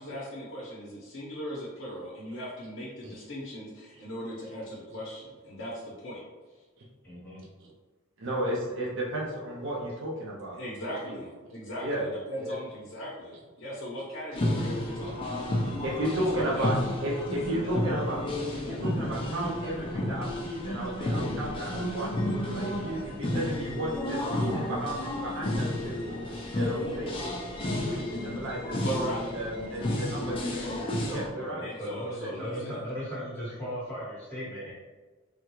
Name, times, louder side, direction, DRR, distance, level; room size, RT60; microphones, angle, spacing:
voice 1, 0.0-6.2 6.5-6.6 10.5-15.5 16.3-16.7 17.3-17.7 28.8-29.5 30.5-30.7 31.0-31.3 31.6-32.8, equal, 55° left, -6 dB, 0.7 m, -38 dB
voice 2, 7.0-7.4 31.4-34.7, equal, 10° left, -9 dB, 1.1 m, -37 dB
voice 3, 8.2-10.6 11.0-11.1 11.8-12.1 12.4-12.5 15.0-15.1 15.8-16.8 17.0-18.2 18.5-22.1 22.5-26.2 26.5-27.3 27.8-28.8 29.3-30.7 31.1-31.7 32.2-32.3, right 1 dB, 55° right, -3 dB, 0.5 m, -33 dB
sound 1, 14.3-31.3, left 1 dB, 25° left, 0.4 m, -31 dB
3.5 x 2.2 x 2.9 m, 1.3 s
head